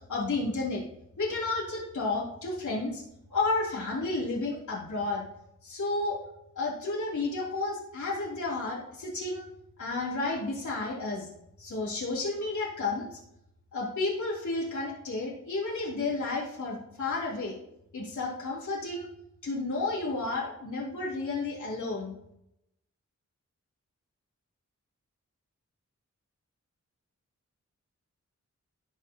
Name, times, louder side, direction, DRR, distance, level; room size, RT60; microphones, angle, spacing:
voice 1, 0.1-0.8 1.2-3.0 3.3-5.2 5.6-6.2 6.5-9.4 9.8-11.3 11.6-13.1 13.7-17.6 17.9-19.1 19.4-22.1, left 3 dB, 80° left, -6 dB, 3.2 m, -31 dB
17.5 x 7.0 x 2.9 m, 0.81 s
wide cardioid pair, 120°, 29 cm